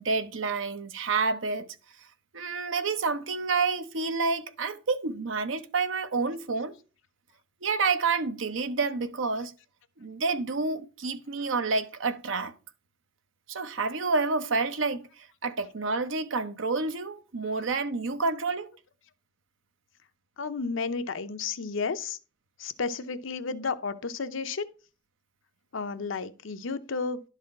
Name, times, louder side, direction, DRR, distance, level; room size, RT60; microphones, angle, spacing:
voice 1, 0.0-1.7 2.3-6.7 7.6-9.5 10.0-12.5 13.5-18.7, right 4 dB, 70° right, 0.7 m, -29 dB
voice 2, 20.4-22.2 22.6-24.7 25.7-27.2, left 4 dB, 75° left, 0.6 m, -32 dB
11.5 x 4.1 x 4.7 m
head